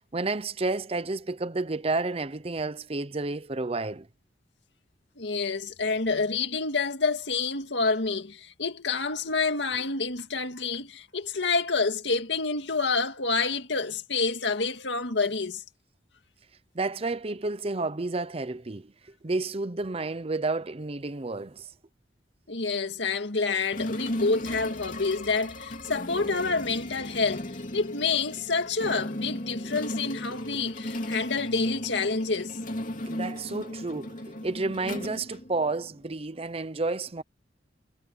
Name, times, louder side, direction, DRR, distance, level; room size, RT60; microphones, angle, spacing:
voice 1, 0.1-4.1 16.7-18.9 19.2-21.7 33.1-37.2, right 3 dB, 35° right, 0.7 m, -31 dB
voice 2, 5.2-15.6 22.5-32.6, left 4 dB, 80° left, 2.0 m, -28 dB
sound 1, 23.7-36.0, left 1 dB, 45° left, 2.8 m, -36 dB
head